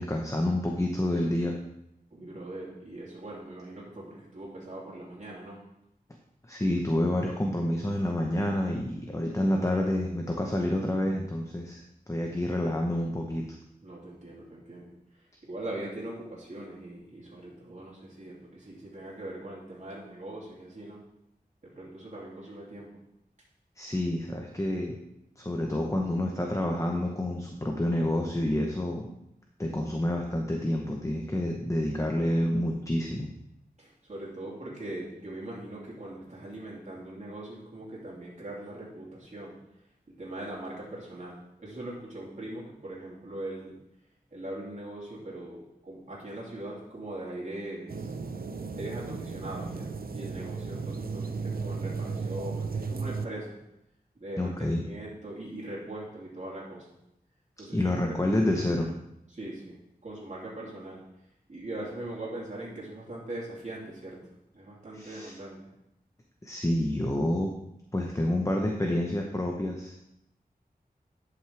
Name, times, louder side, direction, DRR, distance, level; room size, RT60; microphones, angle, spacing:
voice 1, 0.0-1.6 6.5-11.8 12.1-13.4 23.8-25.0 25.4-29.1 29.6-33.3 54.4-54.8 57.7-58.9 64.9-65.3 66.4-67.5 67.9-69.9, left 1 dB, 20° left, 1 dB, 0.9 m, -28 dB
voice 2, 2.1-5.6 13.8-21.0 21.6-23.0 33.8-39.6 40.2-43.8 44.3-48.1 48.7-53.6 54.2-56.9 57.6-57.9 59.3-61.0 61.5-64.2 64.5-65.6, right 1 dB, 45° right, -6 dB, 2.9 m, -41 dB
sound 1, 47.9-53.3, right 4 dB, 70° right, 0.6 m, -35 dB
11.0 x 5.8 x 3.4 m, 0.82 s
wide cardioid pair, 60°, 16 cm